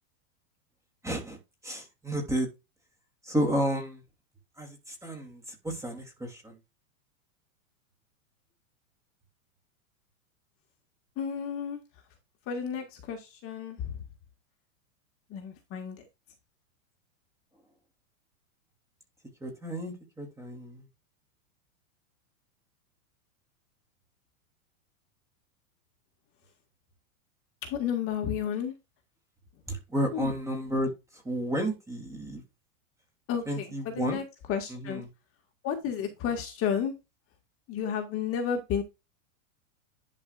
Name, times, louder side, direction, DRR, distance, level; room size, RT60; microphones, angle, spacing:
voice 1, 1.0-1.4 1.6-2.5 3.2-4.0 4.6-6.5 19.4-20.8 29.7-30.9 31.2-32.4 33.5-34.2 34.7-35.1, right 1 dB, 5° right, 3.0 m, -32 dB
voice 2, 11.2-11.8 12.5-14.0 15.3-16.0 27.6-28.7 30.1-30.3 33.3-34.2 34.5-35.0 35.6-36.9 37.7-38.8, left 8 dB, 35° left, 2.0 m, -32 dB
11.0 x 5.3 x 2.5 m
supercardioid pair, 140°, 41 cm